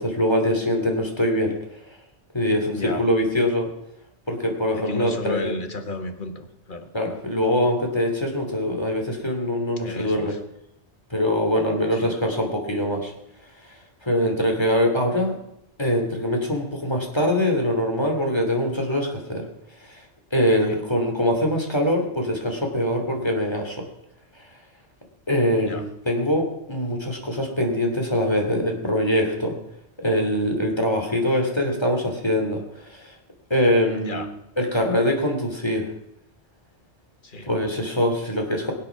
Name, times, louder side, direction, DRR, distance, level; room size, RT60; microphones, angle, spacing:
voice 1, 0.0-1.6 2.3-3.7 4.3-5.5 6.9-10.3 11.1-13.1 13.7-15.4 15.8-19.5 19.8-20.0 20.3-23.9 25.3-29.6 30.0-33.2 33.5-34.3 34.6-35.9 37.5-38.7, left 1 dB, 25° left, 2 dB, 2.8 m, -23 dB
voice 2, 4.7-6.9 9.8-10.4 11.9-12.1 20.7-20.8 25.6-25.8 33.9-34.3 37.2-37.5, left 2 dB, 45° left, 6 dB, 1.7 m, -33 dB
22.0 x 8.5 x 5.9 m, 0.81 s
omnidirectional pair, 1.2 m